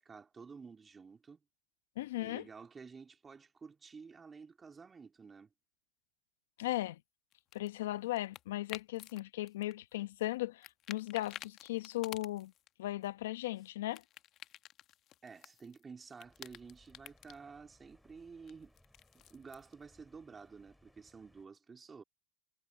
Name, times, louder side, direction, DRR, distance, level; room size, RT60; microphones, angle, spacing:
voice 1, 0.0-1.4 2.2-5.5 15.2-18.7 19.1-22.0, right 5 dB, 20° right, 3.5 m, -52 dB
voice 2, 2.0-2.5 6.6-7.0 7.5-12.5 12.8-14.0, left 16 dB, 80° left, 0.9 m, -37 dB
sound 1, 7.3-9.2 9.5-10.3 10.6-12.7 13.0-15.8 16.1-17.4 18.5-19.7, left 13 dB, 45° left, 1.1 m, -51 dB
sound 2, 16.2-21.5, left 1 dB, 5° left, 7.4 m, -67 dB
supercardioid pair, 115°, 0 cm